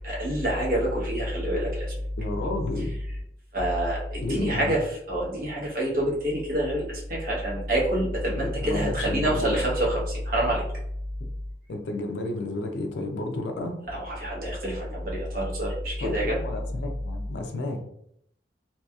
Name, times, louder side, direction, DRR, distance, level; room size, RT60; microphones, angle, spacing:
voice 1, 0.0-2.0 2.8-3.2 3.5-10.6 13.9-16.4, right 1 dB, 50° right, -4 dB, 0.8 m, -27 dB
voice 2, 2.2-2.9 4.2-4.7 8.4-9.6 11.2-11.3 11.7-13.8 16.0-17.8, left 2 dB, 75° left, 4 dB, 0.4 m, -31 dB
2.7 x 2.3 x 2.3 m, 0.73 s
head